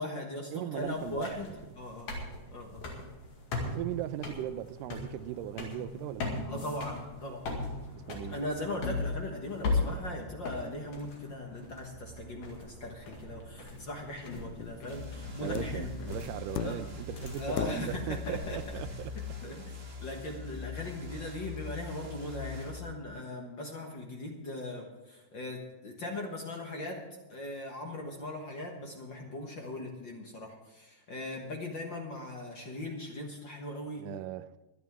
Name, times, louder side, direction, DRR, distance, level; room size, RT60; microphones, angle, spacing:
voice 1, 0.0-2.1 2.5-2.8 6.4-7.5 8.3-15.9 16.6-16.8 17.4-18.6 19.4-27.0 27.3-34.0, left 1 dB, 45° left, 1.6 m, -39 dB
voice 2, 0.5-1.5 3.7-6.3 8.0-8.4 15.4-19.1 34.0-34.5, right 13 dB, 85° right, 2.2 m, -38 dB
sound 1, 0.8-19.2, left 3 dB, 65° left, 3.5 m, -39 dB
sound 2, 14.6-14.9 15.5-15.9 16.6-17.1 17.6-18.1 19.5-19.6, left 12 dB, 80° left, 1.7 m, -37 dB
sound 3, 14.9-22.8, left 4 dB, 30° right, 1.7 m, -43 dB
23.5 x 10.0 x 3.6 m
omnidirectional pair, 3.7 m